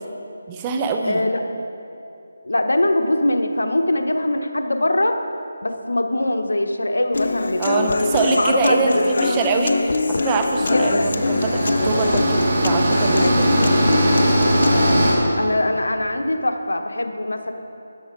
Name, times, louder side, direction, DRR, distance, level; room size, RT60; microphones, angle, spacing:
voice 1, 0.5-1.2 7.6-13.5, right 4 dB, 20° right, 3 dB, 0.8 m, -24 dB
voice 2, 1.0-1.5 2.4-5.2 5.6-7.9 8.3-9.1 10.6-11.1 15.1-17.5, left 1 dB, 85° left, 6 dB, 1.0 m, -22 dB
Human voice / Acoustic guitar, 7.1-15.2, left 3 dB, 60° left, 0.6 m, -23 dB
sound 1, 10.5-15.1, right 1 dB, 40° right, 2.9 m, -20 dB
13.5 x 10.0 x 4.5 m, 2.7 s
figure-of-eight pair, 160°, 0 cm